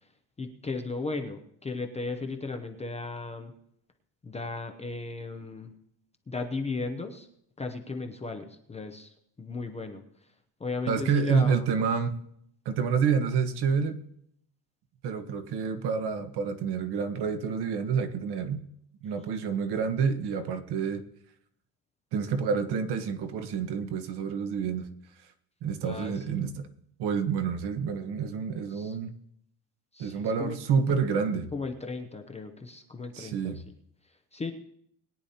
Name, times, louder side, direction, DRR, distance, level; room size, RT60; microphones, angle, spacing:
voice 1, 0.4-3.5 4.2-5.7 6.3-7.3 7.6-10.0 10.6-11.7 25.8-26.4 28.7-29.0 29.9-30.6 31.5-33.6 34.3-34.5, left 3 dB, 15° left, 4 dB, 0.6 m, -36 dB
voice 2, 10.9-12.2 12.6-14.0 15.0-18.6 19.0-21.0 22.1-24.9 25.6-26.7 27.0-29.1 30.0-31.5 33.1-33.6, right 6 dB, 60° right, 7 dB, 1.3 m, -28 dB
21.0 x 10.0 x 2.8 m, 0.70 s
cardioid pair, 175°, 45 cm